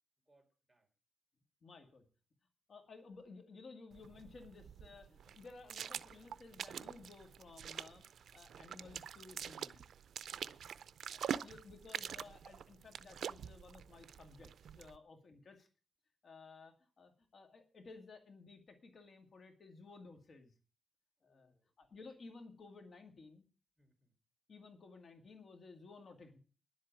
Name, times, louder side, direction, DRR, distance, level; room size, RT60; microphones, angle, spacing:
voice 1, 0.3-0.9 10.3-10.9 15.1-15.5 21.2-21.7 23.8-24.2, right 1 dB, 10° right, 3 dB, 3.5 m, -74 dB
voice 2, 1.6-2.0 2.7-8.0 8.3-9.8 11.1-15.7 16.2-20.5 21.2-23.4 24.5-26.4, left 3 dB, 50° left, 5 dB, 2.2 m, -56 dB
sound 1, 3.9-15.0, right 8 dB, 80° right, 0.5 m, -46 dB
11.0 x 7.8 x 9.0 m, 0.38 s
wide cardioid pair, 115°, 0 cm